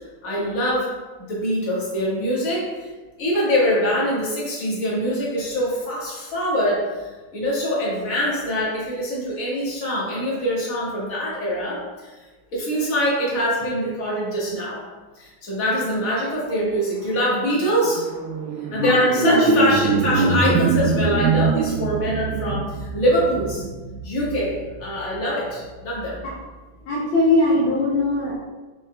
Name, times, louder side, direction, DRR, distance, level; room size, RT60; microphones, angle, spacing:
voice 1, 0.2-0.9 1.2-2.9 3.2-7.1 7.3-12.1 12.5-14.8 15.2-18.0 18.7-23.6 24.0-26.2, equal, 45° left, -6 dB, 2.1 m, -24 dB
sound 1, 16.6-26.2, right 5 dB, 85° right, 1.9 m, -26 dB
voice 2, 18.7-19.7 26.2-26.3 26.9-28.3, left 1 dB, 70° left, -6 dB, 1.9 m, -20 dB
6.7 x 4.4 x 3.3 m, 1.2 s
omnidirectional pair, 2.2 m